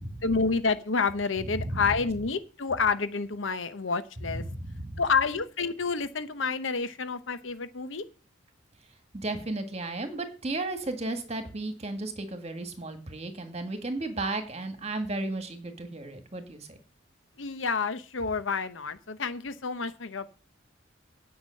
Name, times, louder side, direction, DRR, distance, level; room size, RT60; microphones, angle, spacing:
voice 1, 0.2-4.4 5.0-8.0 17.4-20.3, left 4 dB, 80° left, 12 dB, 1.0 m, -29 dB
voice 2, 1.4-1.9 4.3-5.0 9.1-16.8, right 2 dB, 35° right, 7 dB, 1.9 m, -34 dB
9.7 x 6.0 x 7.7 m, 0.36 s
head